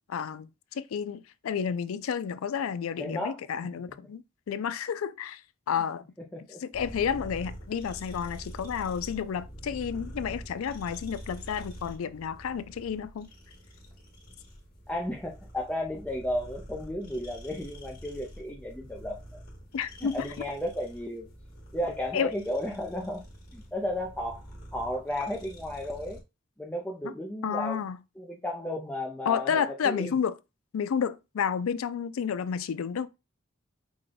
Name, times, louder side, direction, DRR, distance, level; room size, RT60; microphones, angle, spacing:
voice 1, 0.0-5.4 5.7-6.0 6.6-13.3 19.7-20.2 22.1-22.3 27.0-27.1 27.4-28.0 29.3-30.4 30.7-33.1, left 7 dB, 90° left, 0.4 m, -31 dB
voice 2, 3.0-3.4 6.3-6.6 14.9-19.2 20.0-21.3 21.7-23.2 23.5-24.4 24.7-26.2 26.6-27.8 28.2-30.1, left 1 dB, 5° left, 0.5 m, -33 dB
sound 1, 6.7-26.2, equal, 45° left, 1.3 m, -46 dB
5.0 x 2.2 x 3.8 m
head